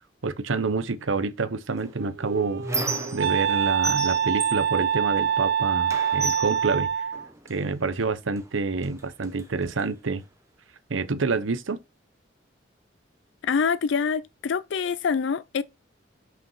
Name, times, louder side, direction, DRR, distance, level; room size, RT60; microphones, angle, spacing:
voice 1, 0.2-2.7 3.1-6.9 7.5-10.2 10.9-11.8, right 4 dB, 85° right, 0.8 m, -27 dB
Squeak, 1.8-3.5 3.8-5.5 5.9-7.6 8.4-8.5 8.8-9.8, right 3 dB, 15° right, 0.9 m, -34 dB
Wind instrument woodwind instrument, 1.8-7.3, right 8 dB, 55° right, 0.4 m, -25 dB
voice 2, 13.4-15.6, left 6 dB, 70° left, 0.4 m, -25 dB
6.0 x 5.1 x 5.6 m
head